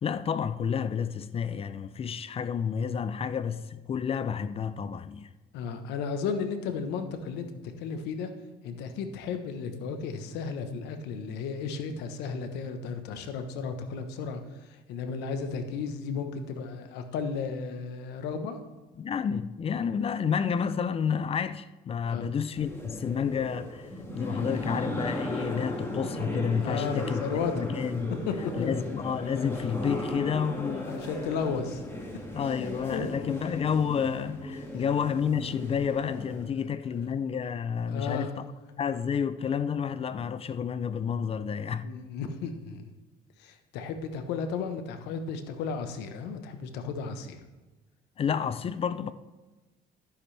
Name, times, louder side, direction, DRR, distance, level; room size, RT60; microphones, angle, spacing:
voice 1, 0.0-5.3 19.0-23.9 24.1-28.1 28.6-31.0 32.3-38.5 38.8-41.9 48.2-49.1, left 7 dB, 35° left, 0.5 m, -30 dB
voice 2, 5.5-8.3 8.6-18.6 22.0-22.3 26.6-27.5 28.3-28.7 30.9-31.8 32.9-33.1 36.9-37.0 37.9-38.3 41.8-42.9 43.4-47.4, left 5 dB, 90° left, 1.1 m, -34 dB
sound 1, 22.6-36.5, left 1 dB, 15° left, 2.2 m, -36 dB
11.5 x 10.5 x 3.3 m
cardioid pair, 110°, 17 cm